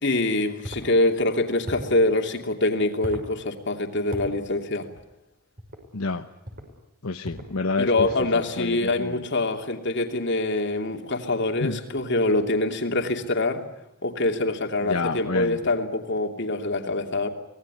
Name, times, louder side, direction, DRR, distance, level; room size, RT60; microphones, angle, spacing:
voice 1, 0.0-4.9 7.8-13.6 14.0-17.3, left 2 dB, 55° left, 4 dB, 2.8 m, -25 dB
sound 1, 0.6-0.9 1.6-2.0 3.0-3.3 4.1-4.3 5.6-5.8 6.4-6.7 7.2-7.5 8.0-8.3, equal, 45° right, 5.9 m, -36 dB
voice 2, 5.9-6.3 7.0-8.1 8.3-9.2 11.6-11.8 14.8-15.6, left 3 dB, 80° left, 6 dB, 1.1 m, -28 dB
24.5 x 19.0 x 9.9 m, 0.90 s
head